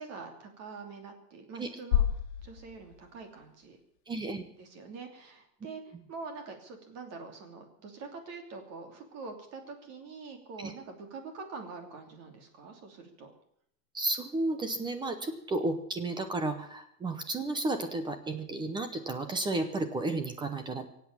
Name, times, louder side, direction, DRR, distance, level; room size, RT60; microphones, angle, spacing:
voice 1, 0.0-2.0 2.4-3.8 4.6-13.3, right 4 dB, 30° right, 5 dB, 2.9 m, -45 dB
sound 1, 1.9-4.0, left 10 dB, 75° left, 1.6 m, -31 dB
voice 2, 4.1-4.4 10.6-10.7 13.9-20.9, right 2 dB, 10° right, 9 dB, 0.7 m, -32 dB
23.5 x 8.3 x 7.3 m, 0.70 s
supercardioid pair, 160°, 48 cm